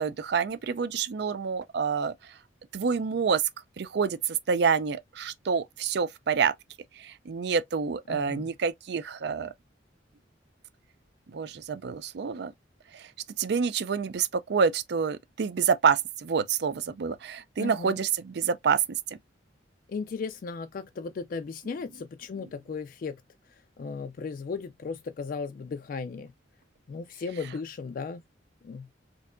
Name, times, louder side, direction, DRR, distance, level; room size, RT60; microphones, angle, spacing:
voice 1, 0.0-2.3 2.7-3.4 3.8-6.5 7.0-9.5 11.3-12.5 12.9-13.1 13.4-18.8, right 6 dB, 60° right, 0.4 m, -27 dB
voice 2, 8.1-8.5 17.6-18.0 19.9-23.2 23.8-26.3 26.9-28.2 28.6-28.9, left 5 dB, 50° left, 0.3 m, -36 dB
4.4 x 2.7 x 2.4 m
head